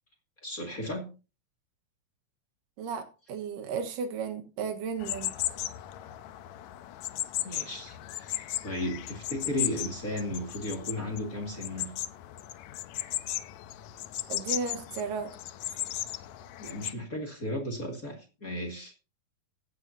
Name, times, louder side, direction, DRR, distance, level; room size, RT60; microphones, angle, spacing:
voice 1, 0.4-1.1 7.4-11.9 16.6-18.9, left 1 dB, 30° left, 2.3 m, -35 dB
voice 2, 2.8-5.4 14.3-15.3, right 5 dB, 80° right, 3.0 m, -34 dB
sound 1, 5.0-16.9, left 14 dB, 75° left, 1.8 m, -36 dB
15.0 x 9.8 x 2.8 m
omnidirectional pair, 3.8 m